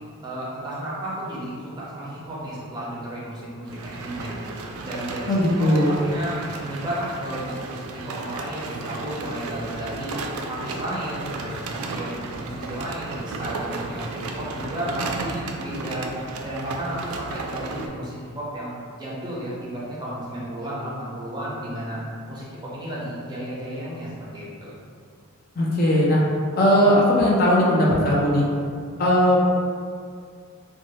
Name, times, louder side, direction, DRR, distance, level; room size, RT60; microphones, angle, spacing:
voice 1, 0.2-4.4 4.8-10.2 10.5-16.1 16.4-22.0 22.3-24.7, right 1 dB, 20° right, -7 dB, 0.6 m, -33 dB
sound 1, 3.7-17.9, right 3 dB, 75° right, 0.3 m, -34 dB
voice 2, 5.3-5.9 25.6-26.2 26.6-28.4 29.0-29.4, equal, 40° left, -5 dB, 0.4 m, -18 dB
2.7 x 2.2 x 3.0 m, 2.1 s
head